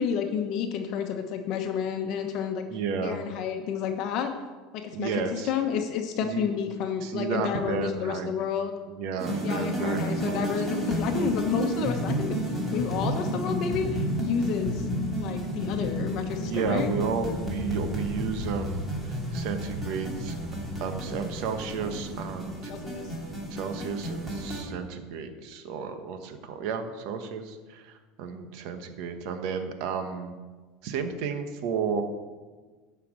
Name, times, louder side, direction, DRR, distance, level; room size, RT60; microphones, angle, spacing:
voice 1, 0.0-2.6 3.0-4.3 4.7-8.7 9.4-12.4 12.7-14.9 15.2-16.9 22.7-23.1, left 7 dB, 50° left, 4 dB, 1.0 m, -30 dB
voice 2, 2.7-3.2 4.9-5.5 6.2-6.5 7.0-8.3 8.9-10.8 16.4-20.4 20.8-22.7 23.5-30.3 30.8-32.0, right 6 dB, 60° right, 7 dB, 1.2 m, -32 dB
sound 1, 9.2-24.6, equal, 15° right, 2.8 m, -31 dB
11.5 x 5.8 x 7.4 m, 1.4 s
supercardioid pair, 145°, 0 cm